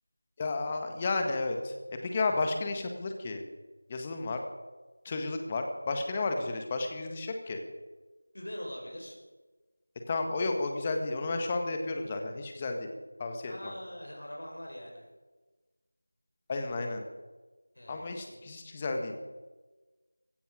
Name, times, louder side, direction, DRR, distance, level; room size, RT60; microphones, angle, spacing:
voice 1, 0.4-3.4 3.9-4.4 5.0-7.6 10.1-12.9 13.2-13.7 16.5-17.0 17.9-19.1, left 3 dB, 15° left, 4 dB, 1.6 m, -32 dB
voice 2, 8.3-9.2 13.5-15.1 17.7-18.4, equal, 65° left, 0 dB, 4.9 m, -43 dB
16.0 x 15.5 x 5.1 m, 1.2 s
figure-of-eight pair, 175°, 0 cm